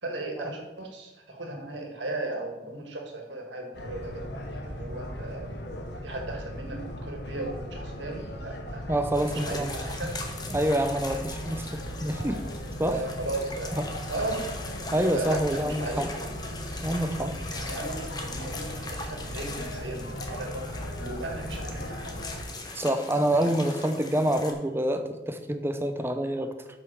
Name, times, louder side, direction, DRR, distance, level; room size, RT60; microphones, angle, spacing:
voice 1, 0.0-4.2 4.5-5.6 6.0-9.0 9.3-10.2 12.8-13.8 14.1-14.5 15.1-16.3 17.5-20.7 21.0-22.2 23.3-23.5, right 2 dB, 90° right, 2 dB, 1.8 m, -36 dB
sound 1, 3.7-22.4, equal, 75° left, 1.2 m, -38 dB
voice 2, 8.9-9.7 10.5-12.4 12.8-13.0 13.8-13.9 14.9-16.1 16.8-17.3 22.7-26.5, right 1 dB, 15° right, 8 dB, 0.6 m, -27 dB
sound 2, 9.1-24.5, left 2 dB, 20° left, 1.0 m, -41 dB
7.8 x 5.9 x 6.6 m, 1.1 s
head